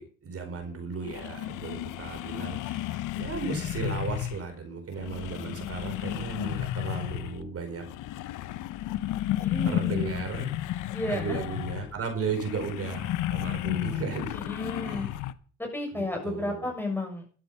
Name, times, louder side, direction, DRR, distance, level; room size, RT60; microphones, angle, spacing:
voice 1, 0.0-7.8 9.6-10.5 11.0-14.4 14.8-15.2 15.9-16.7, right 5 dB, 50° right, 5 dB, 4.7 m, -35 dB
sound 1, 0.6-0.7 1.0-4.5 4.9-7.5 7.8-15.3, left 13 dB, 90° left, 0.9 m, -33 dB
voice 2, 9.4-10.1 10.9-11.4 14.4-15.1 15.6-17.2, left 2 dB, 5° left, 2 dB, 6.7 m, -33 dB
12.5 x 11.5 x 5.6 m, 0.42 s
cardioid pair, 90°, 30 cm